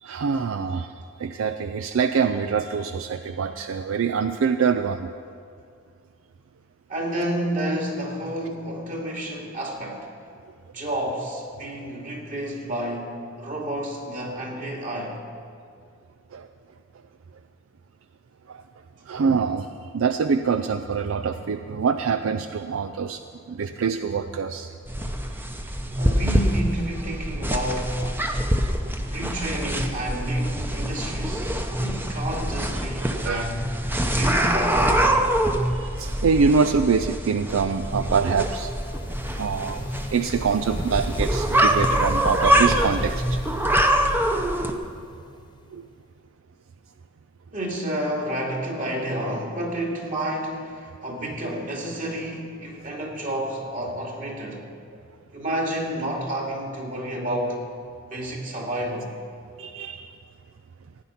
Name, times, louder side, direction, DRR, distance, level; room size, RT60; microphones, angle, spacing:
voice 1, 0.0-5.1 16.3-16.5 18.5-18.6 19.1-19.7 19.9-24.7 33.0-33.5 35.6-38.7 39.3-43.5 45.7-45.9 59.6-60.2, right 5 dB, 75° right, 9 dB, 0.4 m, -25 dB
voice 2, 6.9-10.1 10.7-15.2 26.0-28.0 29.0-33.6 34.1-35.1 39.3-39.4 47.5-54.6 55.3-57.6 58.1-59.1, right 1 dB, 40° right, -1 dB, 2.4 m, -30 dB
sound 1, 24.9-44.7, right 1 dB, 10° right, 0.8 m, -24 dB
sound 2, 37.2-46.0, left 2 dB, 20° left, 0.6 m, -40 dB
16.0 x 9.5 x 5.8 m, 2.3 s
head